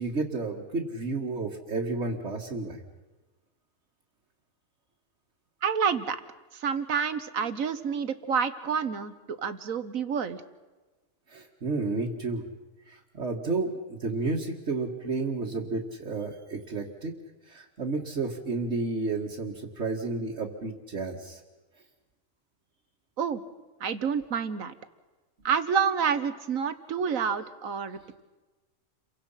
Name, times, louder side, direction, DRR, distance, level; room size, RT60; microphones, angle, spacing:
voice 1, 0.0-2.8 11.3-12.5 12.9-17.1 17.5-21.4, right 3 dB, 55° right, -3 dB, 2.4 m, -31 dB
voice 2, 5.6-6.2 6.5-10.4 23.2-23.4 23.8-24.7 25.4-28.2, right 6 dB, 70° right, 11 dB, 1.7 m, -28 dB
29.5 x 24.0 x 5.8 m, 1.2 s
omnidirectional pair, 1.5 m